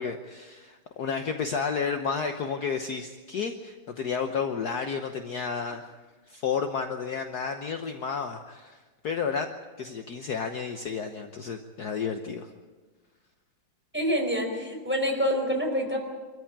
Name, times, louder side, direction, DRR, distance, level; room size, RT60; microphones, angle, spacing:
voice 1, 0.0-5.9 6.3-12.5, left 6 dB, 55° left, 6 dB, 1.5 m, -31 dB
voice 2, 13.9-16.0, equal, 5° right, 1 dB, 4.6 m, -26 dB
25.0 x 14.0 x 8.9 m, 1.3 s
omnidirectional pair, 2.2 m